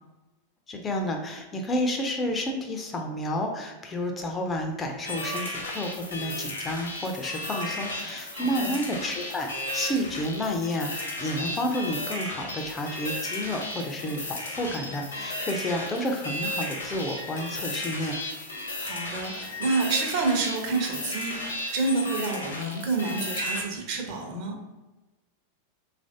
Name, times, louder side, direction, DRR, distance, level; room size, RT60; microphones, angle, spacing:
voice 1, 0.7-18.2, left 1 dB, 20° left, 3 dB, 0.4 m, -30 dB
sound 1, 5.0-23.6, left 1 dB, 65° left, 0.7 m, -34 dB
voice 2, 8.3-8.7 18.6-24.6, right 3 dB, 45° right, 1 dB, 0.7 m, -29 dB
3.1 x 2.5 x 2.6 m, 1.1 s
figure-of-eight pair, 90°, 0 cm